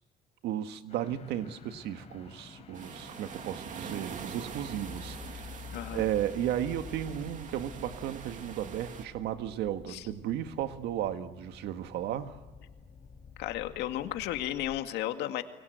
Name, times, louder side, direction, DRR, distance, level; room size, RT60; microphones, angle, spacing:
voice 1, 0.4-5.6 5.9-12.4, right 11 dB, 80° right, 9 dB, 1.7 m, -34 dB
sound 1, 0.9-14.9, left 5 dB, 40° left, 4.6 m, -49 dB
sound 2, 2.7-9.0, right 6 dB, 50° right, 2.7 m, -44 dB
voice 2, 5.7-6.0 9.9-10.1 13.4-15.4, left 13 dB, 85° left, 7 dB, 2.0 m, -34 dB
29.5 x 23.5 x 8.1 m, 1.2 s
cardioid pair, 110°, 17 cm